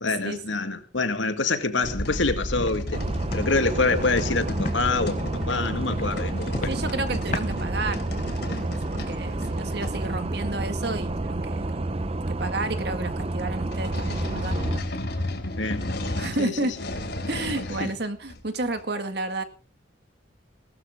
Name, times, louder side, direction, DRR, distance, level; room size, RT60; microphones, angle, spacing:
voice 1, 0.0-3.0 3.3-6.7 15.6-15.9 16.4-16.5 17.8-17.9, left 3 dB, 80° left, 2.0 m, -26 dB
sound 1, 1.8-10.1 13.7-17.9 18.3-18.8, left 1 dB, 60° left, 3.4 m, -33 dB
Walk footsteps, 2.6-2.7 3.2-3.4 3.9-4.0 4.6-4.7 5.2-5.5 5.9-6.1 6.5-6.8 7.3-7.5, left 2 dB, 40° left, 1.6 m, -31 dB
sound 2, 2.9-14.8, right 2 dB, 30° right, 0.7 m, -30 dB
voice 2, 6.7-8.0 8.4-11.9 12.3-14.6 16.2-16.8 17.3-19.4, right 2 dB, 60° right, 2.0 m, -31 dB
19.0 x 13.0 x 3.8 m
head